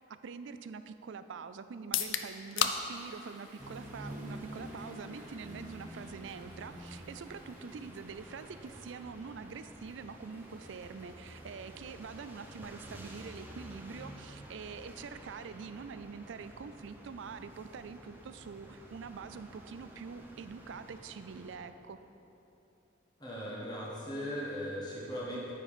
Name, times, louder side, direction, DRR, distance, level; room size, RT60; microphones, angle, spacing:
voice 1, 0.0-22.0, right 5 dB, 75° right, 11 dB, 0.4 m, -45 dB
sound 1, 1.8-15.6, left 8 dB, 85° left, 0.5 m, -43 dB
Toilet flush / Drip / Trickle dribble, 2.6-12.7, right 1 dB, 40° right, 1.2 m, -59 dB
sound 2, 3.6-21.6, right 1 dB, 10° right, 0.7 m, -49 dB
voice 2, 23.2-25.5, equal, 20° left, -7 dB, 1.4 m, -38 dB
9.4 x 5.1 x 5.6 m, 3.0 s
head